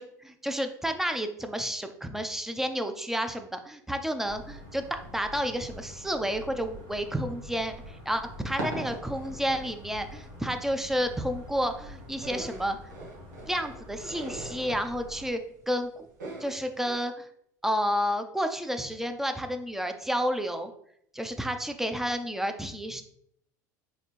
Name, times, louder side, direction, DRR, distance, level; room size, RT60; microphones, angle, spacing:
voice 1, 0.0-12.8 13.5-15.4 15.7-16.1 16.4-17.3 17.6-20.7 21.1-23.0, equal, 5° right, 7 dB, 0.5 m, -31 dB
sound 1, 4.2-15.3, left 1 dB, 60° right, 1.4 m, -46 dB
sound 2, 8.1-17.0, right 1 dB, 85° right, 1.2 m, -41 dB
4.1 x 3.1 x 3.1 m, 0.71 s
hypercardioid pair, 85°, 10 cm